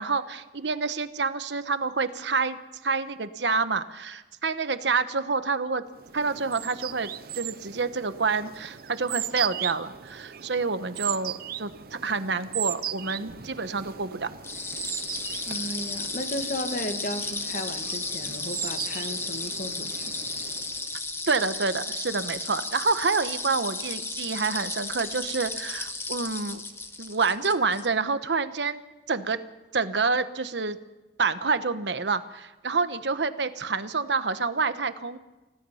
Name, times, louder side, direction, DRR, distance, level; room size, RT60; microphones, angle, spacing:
voice 1, 0.0-2.6 2.8-5.8 6.1-14.3 21.3-26.6 27.0-28.8 29.1-29.4 29.7-30.8 31.2-35.2, right 4 dB, 80° right, 11 dB, 1.1 m, -28 dB
sound 1, 6.0-20.9, right 11 dB, 55° right, 0.6 m, -38 dB
sound 2, 14.4-27.9, left 3 dB, 15° left, 1.2 m, -34 dB
voice 2, 15.5-20.0, left 1 dB, 50° left, 6 dB, 2.0 m, -34 dB
29.5 x 16.5 x 5.7 m, 1.1 s
head